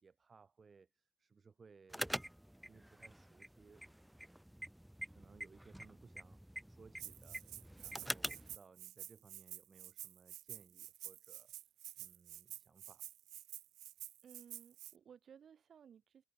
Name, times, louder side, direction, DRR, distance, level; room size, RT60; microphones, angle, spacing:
voice 1, 0.0-2.1 2.6-3.9 5.1-7.5 7.8-11.5 12.0-13.1, right 5 dB, 35° right, 3.3 m, -63 dB
sound 1, 1.9-8.6, equal, 5° right, 0.7 m, -46 dB
Rattle (instrument), 7.0-14.9, right 14 dB, 85° right, 0.5 m, -51 dB
voice 2, 14.2-16.2, right 8 dB, 55° right, 5.6 m, -59 dB
cardioid pair, 90°, 0 cm